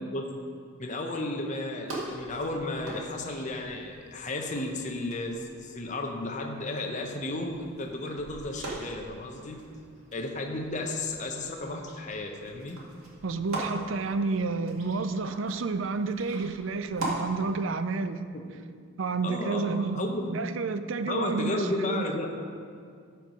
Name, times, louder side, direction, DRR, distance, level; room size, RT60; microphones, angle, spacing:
voice 1, 0.8-9.6 10.1-12.8 18.3-18.4 19.2-20.3 21.0-22.4, left 2 dB, 35° left, 2 dB, 0.8 m, -33 dB
sound 1, 1.9-17.2, right 2 dB, 85° right, 2.0 m, -42 dB
voice 2, 13.2-18.2 19.0-22.1, right 4 dB, 65° right, 11 dB, 0.5 m, -30 dB
13.0 x 4.6 x 5.2 m, 2.2 s
head